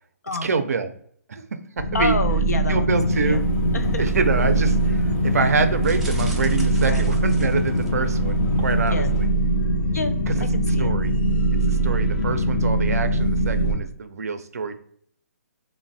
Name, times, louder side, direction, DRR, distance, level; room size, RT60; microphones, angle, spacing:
voice 1, 0.4-0.9 1.3-2.2 2.7-3.4 4.0-9.3 10.3-10.5 10.8-11.1 11.7-14.7, right 4 dB, 70° right, 9 dB, 0.4 m, -26 dB
sound 1, 1.8-13.7, right 1 dB, 40° left, 0.6 m, -22 dB
voice 2, 1.9-2.9 3.3-3.4 3.7-4.0 6.9-7.1 8.9-9.1 9.9-10.9, left 3 dB, 85° left, 8 dB, 0.4 m, -28 dB
sound 2, 2.9-9.3, left 3 dB, 60° left, 0.9 m, -36 dB
sound 3, 5.8-8.1 8.6-8.9 9.2-9.3, right 2 dB, 5° right, 0.3 m, -41 dB
3.0 x 2.0 x 2.5 m, 0.62 s
hypercardioid pair, 145°, 9 cm